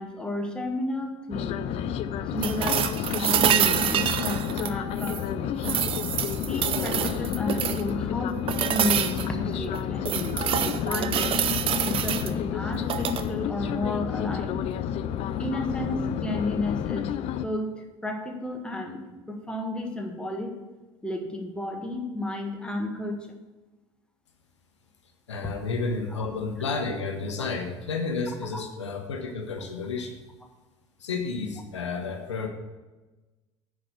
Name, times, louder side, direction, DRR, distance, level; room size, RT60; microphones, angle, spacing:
voice 1, 0.0-1.7 2.3-5.8 6.5-11.4 11.9-14.7 15.4-19.0 19.3-20.5 21.0-23.4 28.5-28.6, left 1 dB, 5° left, 2 dB, 1.6 m, -32 dB
sound 1, 1.3-17.5, left 9 dB, 45° left, 0.5 m, -30 dB
sound 2, 2.4-5.3 5.6-7.9 8.5-9.3 9.7-12.3 12.8-13.3 15.3-15.4, right 10 dB, 40° right, 0.6 m, -27 dB
voice 2, 25.3-30.2 31.0-32.5, left 4 dB, 75° left, 4 dB, 1.0 m, -31 dB
10.0 x 4.8 x 7.9 m, 1.2 s
figure-of-eight pair, 65°, 15 cm